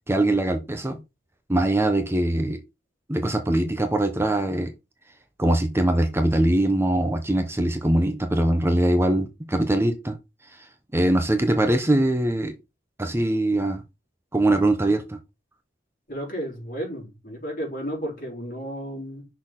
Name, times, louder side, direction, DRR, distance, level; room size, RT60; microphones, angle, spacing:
voice 1, 0.1-1.0 1.5-2.6 3.1-4.7 5.4-10.2 10.9-12.6 13.0-13.8 14.3-15.2, right 1 dB, 15° right, 0.7 m, -22 dB
voice 2, 16.1-19.3, equal, 50° left, 3.3 m, -33 dB
6.2 x 4.2 x 3.7 m
head